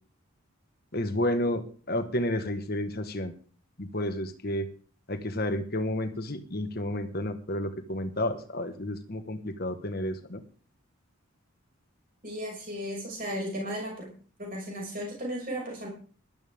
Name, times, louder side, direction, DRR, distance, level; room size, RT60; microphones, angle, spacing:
voice 1, 0.9-3.3 3.8-4.7 5.1-10.4, left 1 dB, 45° left, 8 dB, 1.5 m, -31 dB
voice 2, 12.2-14.1 14.4-15.9, equal, 40° right, -1 dB, 6.3 m, -35 dB
18.0 x 12.5 x 3.6 m, 0.41 s
head